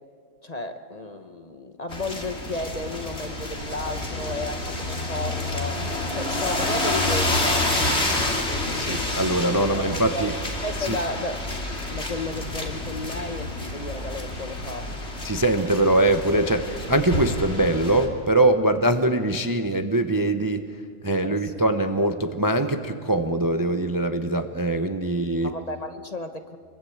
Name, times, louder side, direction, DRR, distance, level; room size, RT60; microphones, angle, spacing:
voice 1, 0.4-8.0 8.7-9.0 9.6-10.3 10.6-11.4 11.9-14.9 21.2-21.5 25.4-26.6, left 2 dB, 30° left, 7 dB, 1.1 m, -33 dB
sound 1, 1.9-18.1, left 2 dB, 50° left, 3.3 m, -28 dB
voice 2, 8.8-10.3 10.9-11.0 15.2-20.7 21.0-25.5, right 1 dB, 15° right, 7 dB, 0.8 m, -22 dB
25.5 x 23.0 x 8.6 m, 2.1 s
omnidirectional pair, 1.5 m